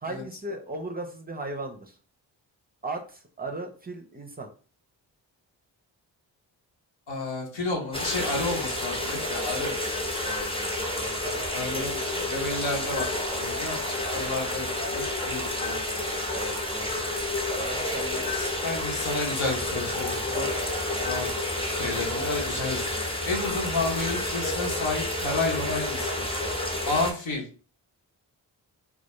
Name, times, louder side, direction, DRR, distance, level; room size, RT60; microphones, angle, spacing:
voice 1, 0.0-2.0 2.8-4.5 10.3-10.7 11.0-11.9 16.3-17.1 17.6-18.3, right 2 dB, 20° right, 4 dB, 0.5 m, -37 dB
voice 2, 7.1-9.7 11.5-16.0 18.3-20.5 21.0-26.4 26.8-27.4, left 3 dB, 75° left, 0 dB, 1.0 m, -31 dB
sound 1, 7.9-27.1, left 1 dB, 10° left, 0.8 m, -30 dB
2.3 x 2.2 x 2.9 m, 0.39 s
supercardioid pair, 40°, 47 cm